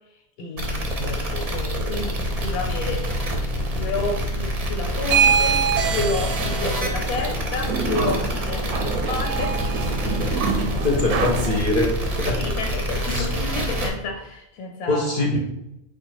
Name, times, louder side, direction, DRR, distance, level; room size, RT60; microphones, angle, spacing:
voice 1, 0.1-3.1 3.7-9.6 10.1-11.0 12.4-15.2, left 3 dB, 90° left, 2 dB, 1.1 m, -31 dB
sound 1, 0.6-13.9, equal, 35° right, 0.6 m, -26 dB
sound 2, 5.0-11.6, right 6 dB, 90° right, 1.1 m, -25 dB
voice 2, 10.8-12.4 13.1-13.3 14.9-15.4, left 2 dB, 50° left, 0 dB, 0.7 m, -23 dB
4.6 x 2.4 x 4.6 m, 0.86 s
omnidirectional pair, 1.5 m